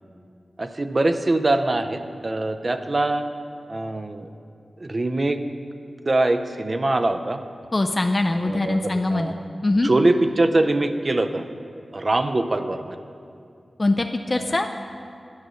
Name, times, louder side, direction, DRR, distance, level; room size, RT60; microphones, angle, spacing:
voice 1, 0.6-3.2 3.7-4.3 4.8-5.4 6.1-7.4 8.4-9.3 9.8-11.4 11.9-13.0 14.3-14.5, right 2 dB, 45° right, 8 dB, 0.5 m, -23 dB
voice 2, 7.7-9.3 9.6-9.9 13.8-14.7, left 2 dB, 35° left, 5 dB, 0.4 m, -22 dB
9.7 x 6.1 x 5.6 m, 2.5 s
cardioid pair, 55°, 0 cm